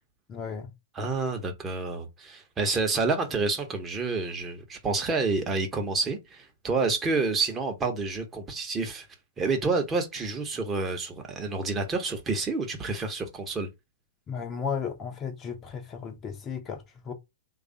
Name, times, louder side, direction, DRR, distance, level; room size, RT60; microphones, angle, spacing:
voice 1, 0.3-0.7 14.3-17.1, left 6 dB, 25° left, 0.7 m, -34 dB
voice 2, 0.9-9.1 9.4-13.7, right 3 dB, 20° right, 0.9 m, -29 dB
3.3 x 2.4 x 3.8 m
figure-of-eight pair, 110°, 0 cm